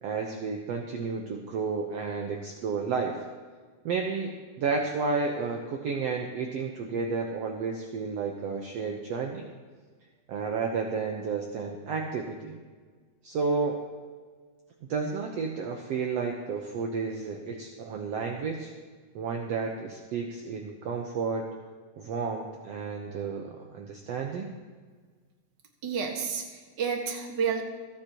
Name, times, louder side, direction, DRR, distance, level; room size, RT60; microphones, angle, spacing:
voice 1, 0.0-3.2 3.9-9.4 10.3-12.6 13.2-13.8 14.9-18.7 19.2-21.5 22.0-24.5, right 5 dB, 65° right, 2 dB, 1.9 m, -31 dB
voice 2, 25.8-27.6, right 6 dB, 40° right, 2 dB, 1.9 m, -30 dB
27.5 x 9.9 x 3.0 m, 1.5 s
omnidirectional pair, 3.5 m